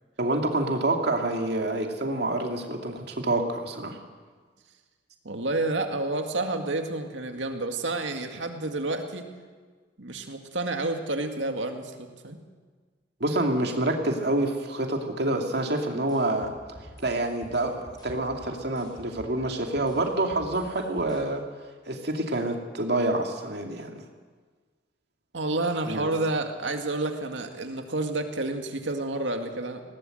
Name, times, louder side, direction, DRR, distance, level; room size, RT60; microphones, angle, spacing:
voice 1, 0.2-4.0 13.2-16.5 17.0-21.4 21.9-24.0 25.9-26.1, right 2 dB, 60° right, 3 dB, 2.5 m, -27 dB
voice 2, 5.2-9.3 10.0-12.4 25.3-29.8, right 2 dB, 80° right, 5 dB, 2.1 m, -30 dB
sound 1, 16.1-19.4 19.8-21.2, equal, 20° left, 5.9 m, -48 dB
20.5 x 17.5 x 7.9 m, 1.5 s
head